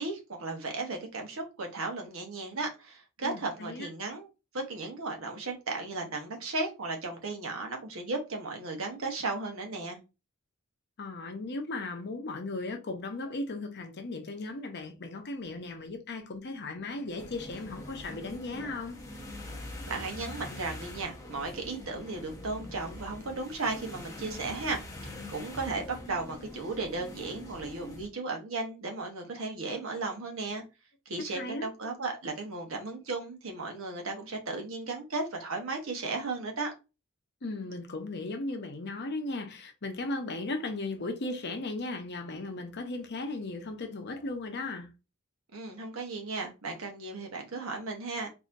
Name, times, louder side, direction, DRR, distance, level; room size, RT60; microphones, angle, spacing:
voice 1, 0.0-4.3 4.5-10.0 19.8-30.6 31.1-36.7 45.5-48.3, right 3 dB, 70° right, 1.0 m, -35 dB
voice 2, 3.2-3.9 11.0-19.0 31.3-31.7 37.4-44.9, left 2 dB, 50° left, 0.7 m, -36 dB
sound 1, 17.2-28.1, left 1 dB, 15° left, 0.6 m, -44 dB
4.0 x 2.7 x 2.5 m
head